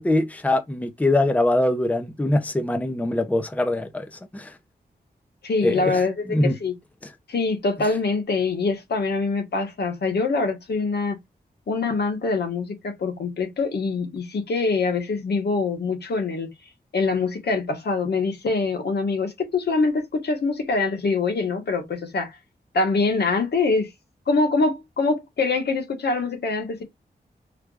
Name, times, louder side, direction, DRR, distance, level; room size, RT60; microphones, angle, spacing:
voice 1, 0.0-4.0 4.3-4.5 5.6-6.0 6.3-6.5, left 1 dB, 10° left, 0.6 m, -22 dB
voice 2, 5.4-6.7 7.3-11.2 11.7-16.5 16.9-22.3 22.7-23.9 24.3-26.8, left 3 dB, 85° left, 1.5 m, -24 dB
4.7 x 3.3 x 2.4 m
wide cardioid pair, 150°, 17 cm